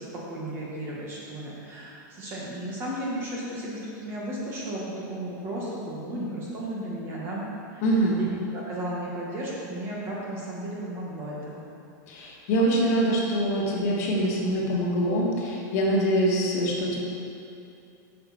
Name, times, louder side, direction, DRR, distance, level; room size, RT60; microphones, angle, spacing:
voice 1, 0.0-7.4 7.7-7.9 8.2-11.6, right 1 dB, 25° right, -5 dB, 1.7 m, -34 dB
voice 2, 7.8-8.2 12.1-17.0, right 1 dB, 55° left, -2 dB, 1.6 m, -24 dB
9.2 x 6.6 x 4.3 m, 2.7 s
supercardioid pair, 175°, 10 cm